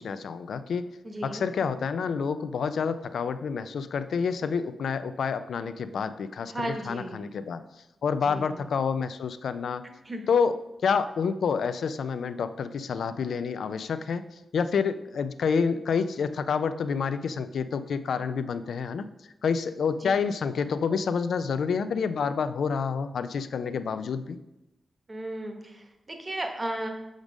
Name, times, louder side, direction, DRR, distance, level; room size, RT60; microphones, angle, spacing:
voice 1, 0.0-0.9 1.2-7.6 8.0-9.8 10.3-14.2 14.5-19.1 19.4-24.4, left 6 dB, 80° left, 11 dB, 0.4 m, -28 dB
voice 2, 1.0-1.4 6.5-7.3 8.2-8.7 10.0-10.2 20.0-20.1 25.1-26.9, right 1 dB, 25° right, 4 dB, 1.0 m, -35 dB
5.3 x 5.1 x 6.1 m, 0.91 s
wide cardioid pair, 125°, 0 cm